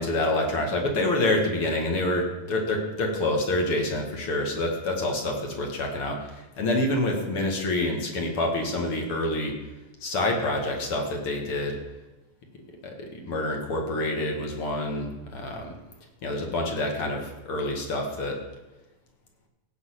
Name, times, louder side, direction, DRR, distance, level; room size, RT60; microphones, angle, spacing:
voice 1, 0.0-9.5 10.0-11.8 12.8-15.7 16.2-18.4, left 1 dB, 50° left, 2 dB, 2.5 m, -27 dB
16.0 x 5.5 x 8.2 m, 1.1 s
omnidirectional pair, 3.3 m